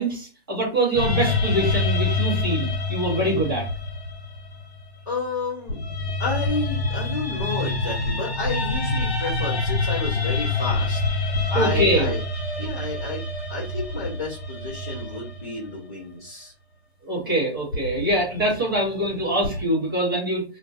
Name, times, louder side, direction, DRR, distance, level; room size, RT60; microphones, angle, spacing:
voice 1, 0.0-3.7 11.5-12.1 17.0-20.4, right 1 dB, 20° right, -5 dB, 0.7 m, -24 dB
sound 1, 0.9-5.2 5.7-15.7 17.7-19.6, left 3 dB, 65° left, 0.9 m, -26 dB
voice 2, 5.1-5.8 6.2-12.2 12.6-13.2 13.5-16.5, left 3 dB, 15° left, -13 dB, 0.5 m, -31 dB
2.5 x 2.1 x 2.5 m, 0.34 s
hypercardioid pair, 175°, 33 cm